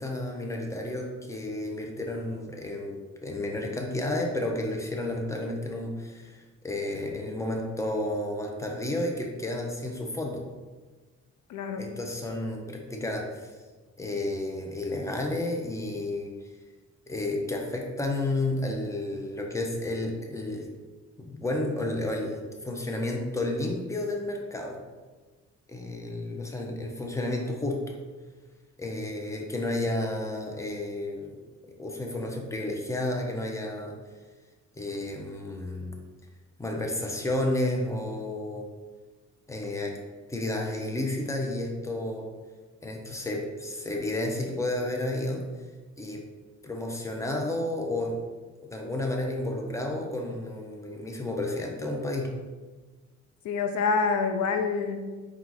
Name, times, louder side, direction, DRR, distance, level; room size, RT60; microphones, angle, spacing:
voice 1, 0.0-10.4 11.8-13.5 14.0-16.3 17.1-20.7 21.2-24.8 25.7-27.9 28.8-31.3 31.8-33.9 34.7-35.9 36.6-38.7 39.5-40.0 40.3-42.2 42.8-45.4 46.0-46.2 46.6-48.2 48.7-52.3, left 1 dB, 10° left, 1 dB, 0.7 m, -31 dB
voice 2, 11.5-12.0 53.4-55.2, left 4 dB, 70° left, 6 dB, 0.4 m, -27 dB
4.5 x 2.4 x 3.9 m, 1.3 s
cardioid pair, 90°, 30 cm